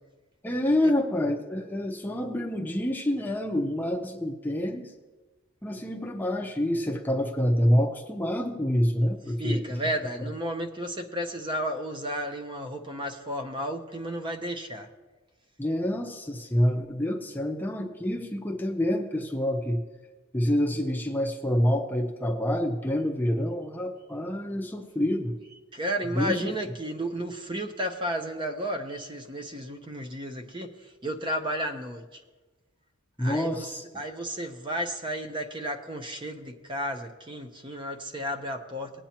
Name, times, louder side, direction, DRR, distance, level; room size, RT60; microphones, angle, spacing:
voice 1, 0.4-4.9 5.6-9.8 15.6-19.8 20.3-25.3 26.1-26.5 33.2-33.9, left 1 dB, 10° left, 2 dB, 0.7 m, -27 dB
voice 2, 9.4-14.9 25.7-30.7 31.0-32.0 33.2-33.7 33.9-38.9, equal, 25° right, 5 dB, 0.8 m, -33 dB
19.0 x 8.7 x 2.9 m, 1.2 s
head